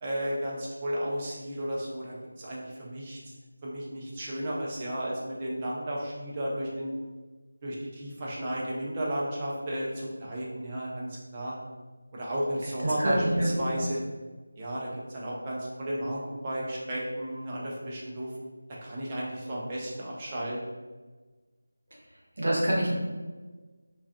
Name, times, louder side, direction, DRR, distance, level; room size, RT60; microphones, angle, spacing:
voice 1, 0.0-3.3 3.6-6.9 7.6-11.6 12.1-14.0 14.6-18.3 18.8-20.6, right 1 dB, 20° right, -5 dB, 0.5 m, -33 dB
voice 2, 13.0-13.5 22.4-23.0, right 1 dB, 55° right, -4 dB, 0.8 m, -25 dB
2.3 x 2.3 x 2.5 m, 1.3 s
figure-of-eight pair, 165°, 0 cm